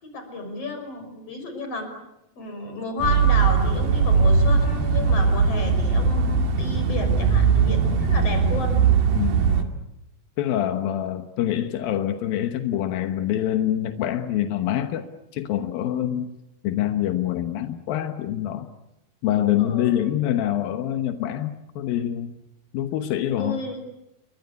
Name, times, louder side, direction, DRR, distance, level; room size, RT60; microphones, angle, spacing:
voice 1, 0.0-1.9 2.4-8.8 19.6-20.1 23.4-23.8, left 3 dB, 45° left, 6 dB, 6.7 m, -32 dB
sound 1, 3.0-9.6, right 5 dB, 85° right, 4.1 m, -20 dB
voice 2, 9.2-9.7 10.4-15.0 15.3-16.3 16.6-18.7 19.2-22.4 22.7-23.6, left 11 dB, 90° left, 8 dB, 3.0 m, -25 dB
29.5 x 23.5 x 8.4 m, 0.88 s
omnidirectional pair, 4.0 m